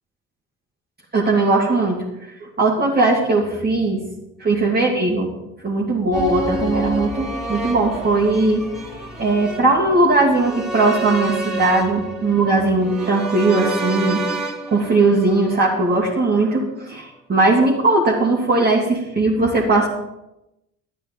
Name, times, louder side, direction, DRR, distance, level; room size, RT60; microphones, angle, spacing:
voice 1, 1.1-4.0 4.4-5.3 5.6-8.7 9.2-14.2 14.7-19.9, right 2 dB, 25° right, -3 dB, 2.3 m, -19 dB
sound 1, 6.1-16.3 16.5-16.6, right 2 dB, ahead, 3.0 m, -29 dB
12.5 x 9.7 x 5.3 m, 0.91 s
figure-of-eight pair, 50°, 36 cm